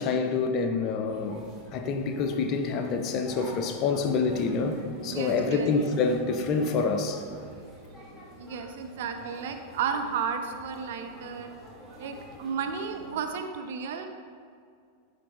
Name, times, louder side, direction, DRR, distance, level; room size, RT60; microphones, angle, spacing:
voice 1, 0.0-1.4 1.7-7.2, left 4 dB, 35° left, 0.6 m, -27 dB
sound 1, 1.0-13.3, right 1 dB, 10° right, 1.6 m, -46 dB
voice 2, 4.9-5.8 8.4-11.5 12.0-14.1, right 6 dB, 55° right, 0.6 m, -33 dB
9.6 x 3.3 x 4.2 m
figure-of-eight pair, 90°, 0 cm